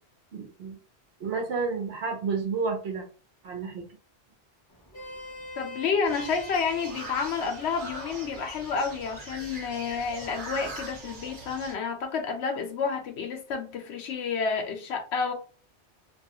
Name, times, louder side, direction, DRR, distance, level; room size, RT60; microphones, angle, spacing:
voice 1, 0.3-0.8 1.2-3.0 3.4-3.9, right 5 dB, 75° right, 1.0 m, -30 dB
Vehicle horn car horn honking, 4.7-11.1, left 1 dB, 30° left, 0.5 m, -46 dB
voice 2, 5.6-15.3, left 5 dB, 80° left, 0.9 m, -30 dB
sound 1, 6.0-11.7, right 2 dB, 50° right, 0.9 m, -42 dB
2.5 x 2.3 x 2.8 m
omnidirectional pair, 1.1 m